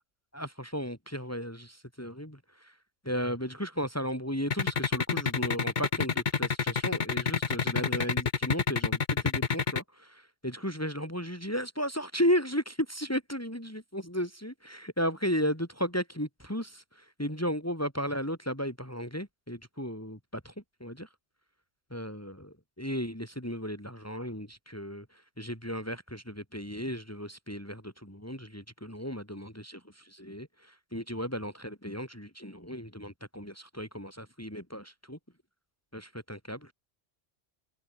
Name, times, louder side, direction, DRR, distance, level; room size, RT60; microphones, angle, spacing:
voice 1, 0.3-2.8 3.0-20.5 20.8-21.1 21.9-35.2 35.9-36.7, equal, 10° left, 5.4 m, -35 dB
sound 1, 4.5-9.8, left 5 dB, 40° left, 1.2 m, -27 dB
omnidirectional pair, 1.3 m